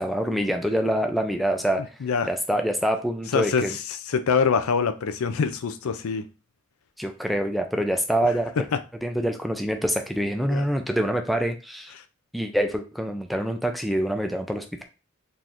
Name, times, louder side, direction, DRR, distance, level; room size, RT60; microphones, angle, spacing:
voice 1, 0.0-1.8 2.2-3.8 7.0-8.5 9.0-11.9 12.3-14.8, equal, ahead, 0.3 m, -25 dB
voice 2, 3.3-3.8 4.1-6.3 8.7-8.8 10.5-10.7, left 6 dB, 75° left, 0.4 m, -24 dB
3.8 x 2.9 x 2.5 m
head